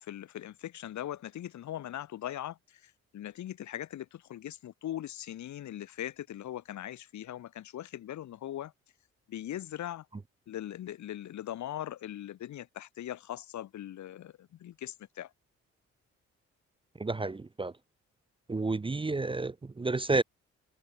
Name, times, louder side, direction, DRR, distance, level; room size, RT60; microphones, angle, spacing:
voice 1, 0.0-8.7 9.3-10.1 10.5-15.3, left 12 dB, 70° left, 0.9 m, -40 dB
voice 2, 17.0-17.7 18.5-20.2, right 3 dB, 15° right, 0.6 m, -30 dB
supercardioid pair, 60°, 30 cm